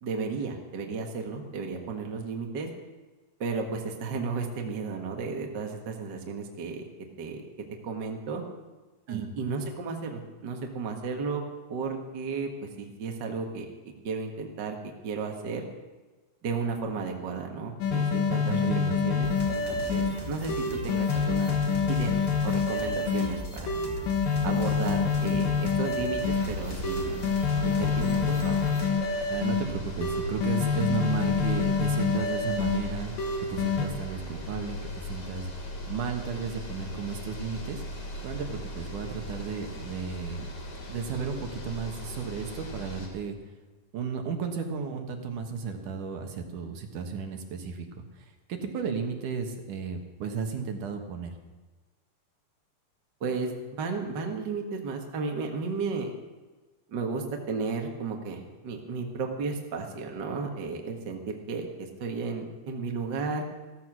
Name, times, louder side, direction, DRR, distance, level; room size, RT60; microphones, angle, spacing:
voice 1, 0.0-2.7 3.4-6.9 7.2-7.5 7.8-8.4 9.1-11.4 11.7-12.5 12.8-13.7 14.0-15.6 16.4-18.7 19.0-21.6 21.9-22.2 22.4-23.7 24.4-27.2 27.6-28.6 53.2-56.1 56.9-63.6, right 4 dB, 40° right, 2 dB, 1.7 m, -33 dB
sound 1, 17.8-20.1 20.5-23.3 23.7-26.4 26.8-29.6 30.0-32.8 33.2-33.9, left 5 dB, 80° left, 3.6 m, -26 dB
voice 2, 18.4-19.0 29.3-33.1 33.5-34.8 35.1-35.5 35.9-37.8 38.2-40.5 40.9-43.4 43.9-48.0 48.5-51.3, right 6 dB, 70° right, 5 dB, 2.8 m, -34 dB
sound 2, 19.2-28.9, left 1 dB, 15° left, 0.9 m, -38 dB
sound 3, 26.2-43.1, equal, 60° left, 4.1 m, -38 dB
15.0 x 14.5 x 6.2 m, 1.3 s
omnidirectional pair, 4.0 m